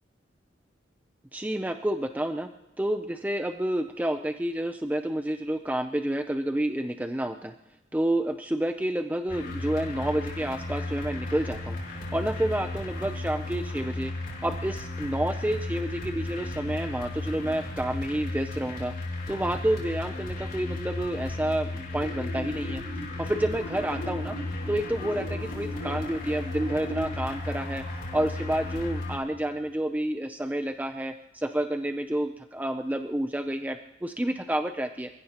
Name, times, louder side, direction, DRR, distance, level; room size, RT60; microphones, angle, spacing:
voice 1, 1.3-2.5 2.8-7.5 7.9-11.8 12.1-14.1 14.4-18.9 19.3-22.8 23.2-24.4 24.7-27.8 28.1-35.1, right 1 dB, 10° right, 7 dB, 0.5 m, -29 dB
sound 1, 9.3-29.2, left 2 dB, 50° left, 5.2 m, -35 dB
sound 2, 22.0-27.0, equal, 80° left, 3.4 m, -39 dB
28.0 x 15.5 x 2.9 m, 1.0 s
head